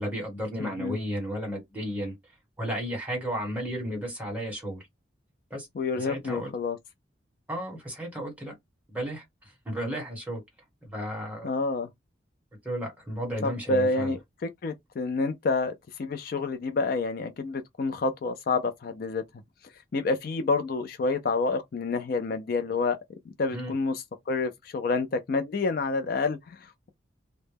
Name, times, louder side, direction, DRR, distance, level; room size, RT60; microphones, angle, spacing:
voice 1, 0.0-2.1 2.6-4.8 5.5-5.7 5.9-6.5 7.5-8.5 8.9-9.2 9.6-10.4 10.9-11.5 12.6-14.1 23.5-23.7, equal, 10° right, 1.1 m, -33 dB
voice 2, 0.6-1.0 5.8-6.8 11.4-11.9 13.4-19.2 19.9-23.0 23.4-26.9, left 3 dB, 50° left, 0.3 m, -28 dB
2.1 x 2.0 x 3.2 m
head